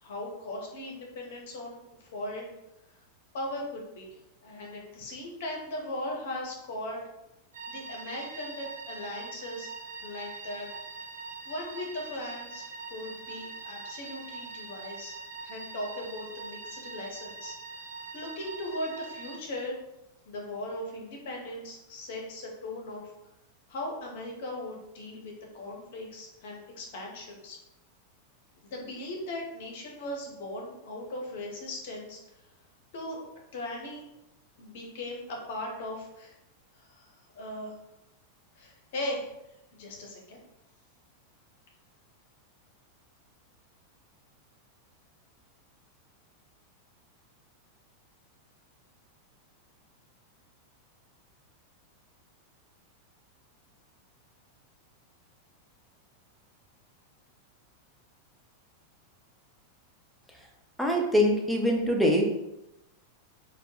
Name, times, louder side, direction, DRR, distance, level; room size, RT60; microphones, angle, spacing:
voice 1, 0.0-2.5 3.3-4.1 4.4-7.0 7.7-9.7 10.0-10.7 11.4-15.2 15.4-17.5 18.1-19.8 20.3-23.1 23.7-27.6 28.6-32.2 32.9-33.2 33.5-34.1 34.6-36.3 36.7-37.8 38.6-39.3 39.7-40.4, left 1 dB, 55° left, 0 dB, 0.6 m, -38 dB
sound 1, 7.5-19.4, right 4 dB, 65° right, 0.4 m, -43 dB
voice 2, 60.8-62.3, equal, ahead, -1 dB, 0.4 m, -23 dB
2.1 x 2.0 x 2.9 m, 0.90 s
figure-of-eight pair, 90°, 0 cm